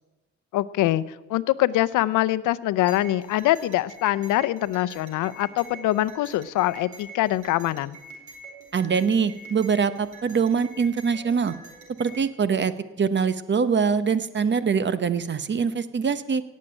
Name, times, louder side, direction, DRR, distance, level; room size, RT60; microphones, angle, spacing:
voice 1, 0.5-1.0 1.3-8.0, left 15 dB, 90° left, 16 dB, 0.7 m, -24 dB
sound 1, 2.8-12.3, right 2 dB, 70° right, 4.7 m, -45 dB
voice 2, 8.7-11.5 12.0-16.4, right 6 dB, 35° right, 14 dB, 1.0 m, -23 dB
17.5 x 7.5 x 9.0 m, 1.1 s
cardioid pair, 90°, 30 cm